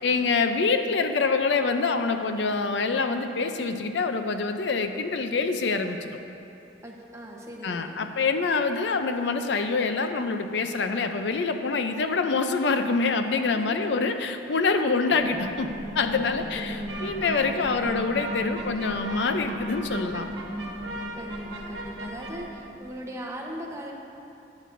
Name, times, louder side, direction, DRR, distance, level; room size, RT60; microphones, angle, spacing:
voice 1, 0.0-6.0 7.6-15.7 15.9-20.3, left 4 dB, 70° left, 7 dB, 0.5 m, -26 dB
voice 2, 6.8-8.0 13.5-14.0 16.4-16.9 21.1-23.9, equal, 15° right, -1 dB, 0.9 m, -40 dB
sound 1, 15.1-22.9, equal, 5° left, 1.7 m, -37 dB
sound 2, 16.9-22.3, right 2 dB, 90° right, 1.1 m, -38 dB
13.0 x 9.3 x 2.6 m, 2.7 s
head